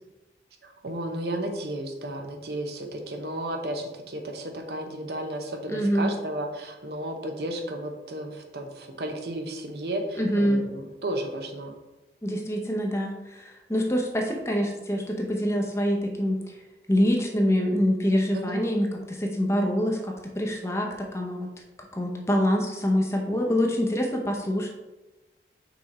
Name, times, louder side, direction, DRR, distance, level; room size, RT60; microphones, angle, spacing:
voice 1, 0.6-11.7 18.3-18.6, right 1 dB, 70° right, 3 dB, 0.9 m, -33 dB
voice 2, 5.7-6.1 10.2-10.6 12.2-16.4 16.9-21.5 22.0-24.7, equal, 15° left, 1 dB, 0.7 m, -25 dB
5.7 x 4.2 x 4.2 m, 1.1 s
head